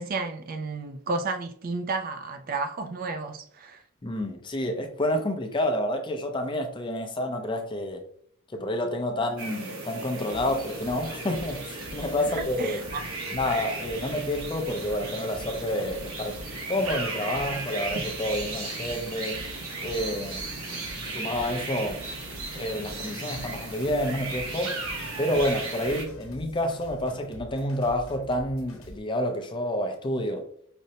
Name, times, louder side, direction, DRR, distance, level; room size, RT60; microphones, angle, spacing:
voice 1, 0.0-3.8 12.2-13.0, right 3 dB, 40° right, 0.3 m, -32 dB
voice 2, 4.0-8.0 8.5-12.8 13.3-16.4 16.7-19.5 19.8-20.4 21.1-22.0 22.5-24.8 25.2-30.4, left 1 dB, 20° left, 0.5 m, -29 dB
sound 1, 9.4-26.0, right 3 dB, 85° right, 1.0 m, -36 dB
sound 2, 10.3-29.0, left 1 dB, 70° left, 0.9 m, -45 dB
5.0 x 2.1 x 2.8 m
head